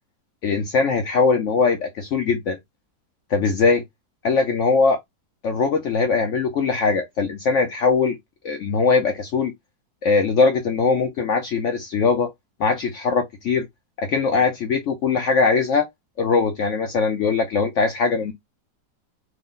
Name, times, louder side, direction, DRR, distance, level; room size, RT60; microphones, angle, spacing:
voice 1, 0.4-2.6 3.3-3.8 4.2-5.0 5.4-8.2 8.4-9.5 10.0-12.3 12.6-13.7 14.0-15.9 16.2-18.3, left 4 dB, 70° left, 0.7 m, -21 dB
3.2 x 2.0 x 3.7 m
omnidirectional pair, 1.8 m